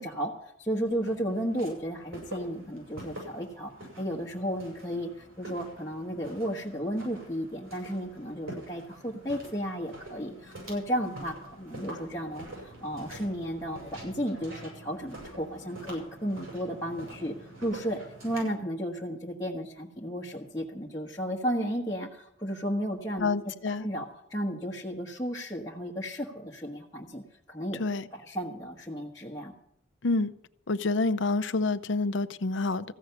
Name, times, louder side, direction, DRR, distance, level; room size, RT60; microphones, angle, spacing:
voice 1, 0.0-23.3 23.7-27.8 28.1-29.5, equal, 15° left, -4 dB, 1.2 m, -34 dB
Walk footsteps, 0.9-18.6, right 1 dB, 85° right, 7.3 m, -46 dB
voice 2, 23.2-23.9 27.8-28.1 30.0-30.3 30.7-32.9, left 3 dB, 65° left, 11 dB, 0.6 m, -28 dB
15.0 x 6.4 x 9.6 m, 0.76 s
head